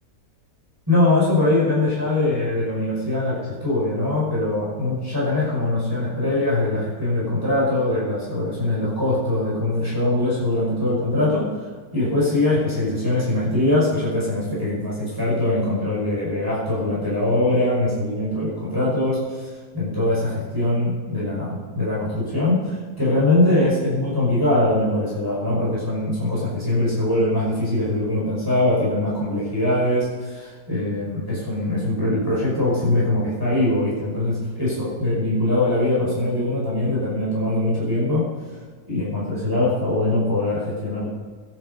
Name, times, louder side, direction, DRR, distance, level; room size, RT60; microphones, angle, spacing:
voice 1, 0.9-11.5 11.9-38.3 38.9-41.1, left 1 dB, 10° right, -8 dB, 5.5 m, -22 dB
21.5 x 9.5 x 5.5 m, 1.5 s
omnidirectional pair, 1.9 m